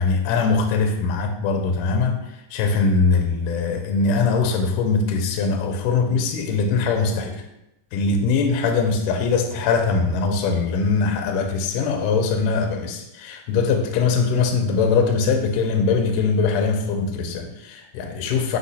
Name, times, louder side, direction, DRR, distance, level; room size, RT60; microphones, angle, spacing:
voice 1, 0.0-2.2 2.5-7.4 7.9-18.6, left 4 dB, 80° left, 4 dB, 1.9 m, -21 dB
5.5 x 2.2 x 4.0 m, 0.85 s
omnidirectional pair, 4.0 m